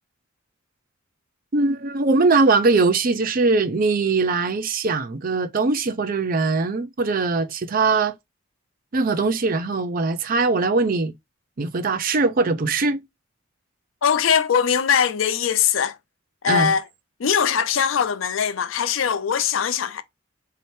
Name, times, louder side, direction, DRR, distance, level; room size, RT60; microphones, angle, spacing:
voice 1, 1.5-8.1 8.9-11.1 11.6-13.0 16.5-16.7, right 3 dB, 45° right, 0.5 m, -21 dB
voice 2, 14.0-16.0 16.4-16.8 17.2-20.0, left 7 dB, 75° left, 0.5 m, -21 dB
4.1 x 2.8 x 3.2 m
head